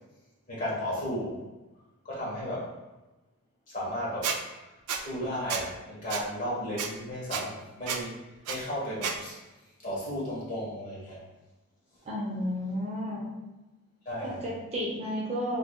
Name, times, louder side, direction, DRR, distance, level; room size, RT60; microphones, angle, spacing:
voice 1, 0.5-1.4 2.1-2.6 3.7-4.3 5.0-8.1 8.5-9.3 9.8-11.2 14.1-14.4, equal, 35° left, -6 dB, 1.1 m, -34 dB
Squeak, 4.2-4.4 4.9-5.0 5.5-5.6 6.1-6.2 6.8-6.9 7.3-7.4 7.9-8.0 8.5-8.6 9.0-9.2, right 7 dB, 80° right, 0.4 m, -30 dB
voice 2, 12.0-13.3 14.2-15.6, equal, 30° right, -5 dB, 0.6 m, -32 dB
3.3 x 3.2 x 2.2 m, 1.1 s
head